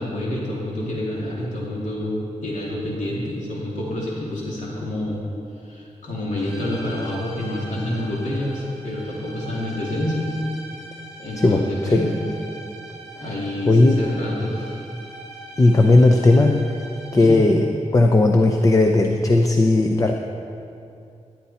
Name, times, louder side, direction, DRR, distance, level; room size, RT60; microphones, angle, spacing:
voice 1, 0.0-5.2 5.6-10.3 11.2-12.1 13.2-14.8 17.1-17.4, left 1 dB, 75° left, -5 dB, 2.8 m, -28 dB
sound 1, 6.4-17.5, right 2 dB, 5° right, 3.9 m, -41 dB
voice 2, 13.7-14.0 15.6-16.7 17.1-17.6 17.9-20.1, left 2 dB, 25° left, 3 dB, 0.7 m, -16 dB
17.5 x 11.5 x 4.3 m, 2.6 s
wide cardioid pair, 155°, 13 cm